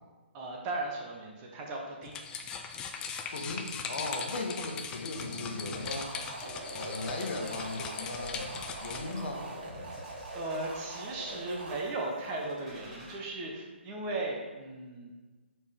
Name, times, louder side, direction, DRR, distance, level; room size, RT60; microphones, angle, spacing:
voice 1, 0.3-2.2 10.3-15.1, right 2 dB, 25° right, -1 dB, 0.9 m, -37 dB
sound 1, 2.0-9.2, left 6 dB, 10° left, 0.3 m, -40 dB
voice 2, 3.3-6.1 6.7-8.5 8.8-9.5, left 2 dB, 60° left, 2 dB, 1.2 m, -37 dB
sound 2, 5.2-13.1, equal, 5° right, 1.4 m, -49 dB
sound 3, 5.8-11.8, right 1 dB, 50° right, 1.9 m, -42 dB
5.3 x 4.4 x 5.0 m, 1.3 s
hypercardioid pair, 155°, 7 cm